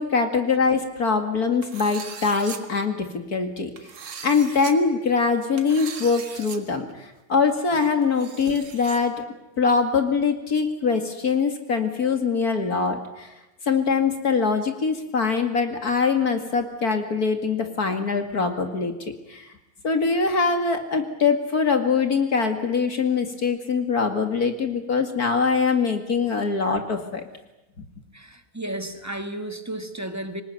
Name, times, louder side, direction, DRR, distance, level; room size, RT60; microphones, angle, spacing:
voice 1, 0.0-3.7 4.2-9.1 9.6-13.3 13.7-18.9 19.3-19.5 19.8-27.2, left 5 dB, 45° left, 5 dB, 2.6 m, -23 dB
sound 1, 1.6-2.6 3.8-4.7 5.6-6.6 6.9-7.0 8.0-9.0, right 6 dB, 75° right, 2.5 m, -39 dB
voice 2, 28.1-30.4, right 1 dB, 10° right, 7 dB, 1.3 m, -33 dB
25.5 x 19.5 x 9.3 m, 0.96 s
omnidirectional pair, 2.3 m